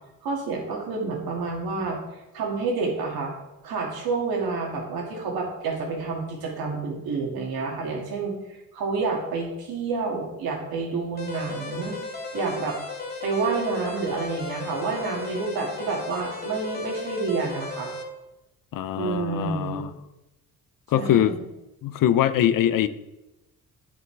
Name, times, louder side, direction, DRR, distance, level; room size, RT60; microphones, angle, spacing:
voice 1, 0.2-2.0 2.3-3.3 3.6-11.9 12.3-12.8 13.2-17.9 18.9-19.8 20.9-21.4, right 4 dB, 85° right, 0 dB, 2.4 m, -29 dB
sound 1, 11.2-18.0, left 3 dB, 25° left, 1.8 m, -35 dB
voice 2, 18.7-19.9 20.9-21.4 21.8-22.9, left 11 dB, 65° left, 14 dB, 0.6 m, -22 dB
9.5 x 8.4 x 3.4 m, 0.99 s
cardioid pair, 105°, 35 cm